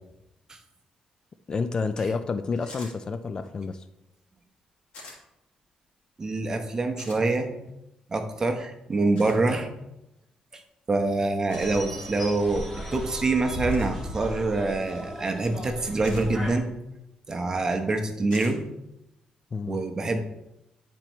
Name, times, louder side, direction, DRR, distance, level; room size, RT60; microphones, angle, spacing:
voice 1, 1.5-3.8 19.5-19.8, left 4 dB, 35° left, 10 dB, 0.4 m, -29 dB
sound 1, 2.7-2.9 4.9-5.2 7.0-7.2 9.1-9.4 11.5-11.7 13.7-14.0 16.0-16.3 18.3-18.5, left 3 dB, 90° left, 2.0 m, -44 dB
voice 2, 6.2-7.5 8.1-9.7 10.5-10.6 10.9-16.7 17.3-18.6 19.7-20.2, right 2 dB, 30° right, 5 dB, 0.9 m, -26 dB
sound 2, 11.5-16.6, equal, 5° left, 1.9 m, -36 dB
9.7 x 4.5 x 3.1 m, 0.88 s
cardioid pair, 110°, 2 cm